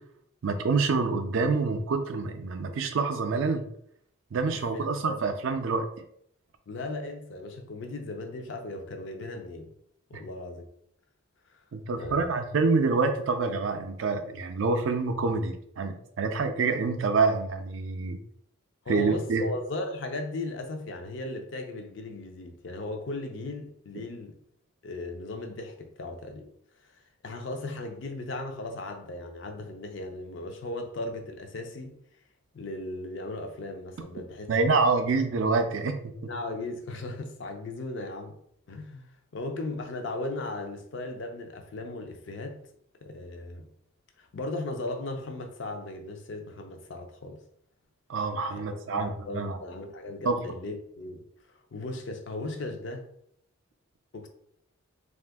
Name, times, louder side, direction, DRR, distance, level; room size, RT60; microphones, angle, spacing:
voice 1, 0.4-3.6 4.3-5.9 10.1-10.2 11.7-18.2 18.9-19.4 34.5-36.1 48.1-49.6 50.3-50.4, right 4 dB, 65° right, 0.4 m, -27 dB
voice 2, 4.5-5.2 6.7-9.7 10.1-10.6 11.9-12.3 18.9-24.4 24.8-26.5 27.2-32.0 32.5-34.5 36.2-38.4 38.7-42.6 43.0-43.7 44.2-47.4 48.5-51.2 51.7-53.1 54.1-54.3, left 2 dB, 55° left, 0.5 m, -37 dB
2.5 x 2.4 x 3.5 m
head